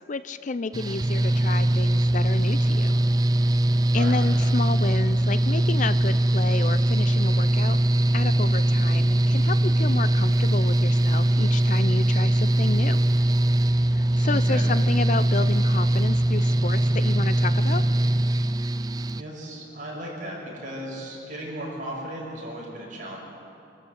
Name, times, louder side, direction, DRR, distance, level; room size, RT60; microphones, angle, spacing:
voice 1, 0.1-3.0 3.9-7.8 8.1-13.0 13.9-17.8, left 4 dB, 40° left, 13 dB, 0.5 m, -31 dB
Mechanical fan, 0.7-19.2, right 1 dB, 20° right, 0.4 m, -21 dB
voice 2, 3.9-4.2 14.3-14.6 18.6-18.8 19.1-23.2, right 1 dB, 45° right, -4 dB, 6.4 m, -36 dB
26.0 x 13.0 x 8.0 m, 2.9 s
head